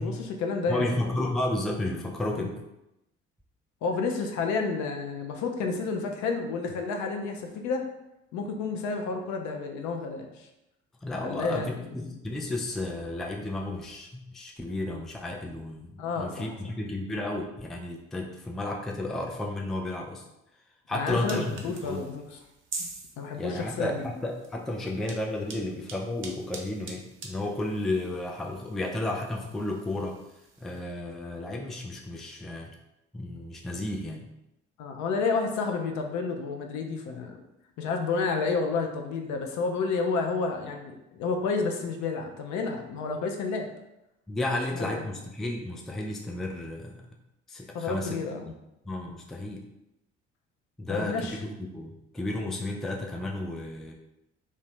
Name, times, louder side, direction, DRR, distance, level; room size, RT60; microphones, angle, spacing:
voice 1, 0.0-0.9 2.4-2.5 3.8-7.9 8.3-10.5 11.2-12.2 16.0-16.5 20.9-22.2 23.2-24.1 34.8-37.4 37.8-43.7 44.5-45.1 47.7-48.5 49.3-49.4 50.9-51.4, left 4 dB, 55° left, 3 dB, 0.5 m, -30 dB
voice 2, 0.7-2.6 11.0-20.2 20.9-22.0 23.4-30.1 30.6-32.7 33.1-34.3 44.3-47.0 47.5-48.2 48.9-49.6 50.8-53.9, left 1 dB, ahead, 0 dB, 0.3 m, -32 dB
sound 1, 21.1-30.8, right 3 dB, 35° right, 0.6 m, -45 dB
2.6 x 2.1 x 3.1 m, 0.89 s
hypercardioid pair, 50°, 34 cm